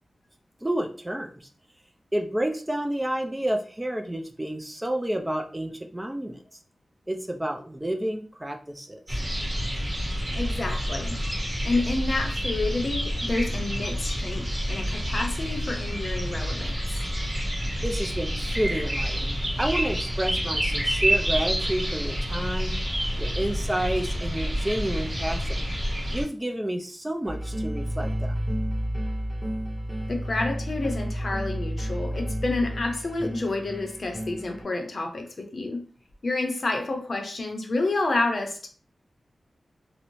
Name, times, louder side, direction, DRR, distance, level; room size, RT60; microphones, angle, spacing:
voice 1, 0.6-1.5 2.1-6.4 7.1-9.2 17.8-22.8 23.2-25.6 26.1-28.3, right 1 dB, 15° right, 4 dB, 0.3 m, -30 dB
sound 1, 9.1-26.2, equal, 40° right, 1.3 m, -28 dB
voice 2, 10.3-11.2 11.6-17.0 30.1-35.9 36.2-38.7, left 2 dB, 55° left, 4 dB, 0.6 m, -29 dB
sound 2, 27.2-34.6, equal, 5° left, 0.8 m, -31 dB
2.6 x 2.0 x 2.9 m, 0.40 s
wide cardioid pair, 80°, 0 cm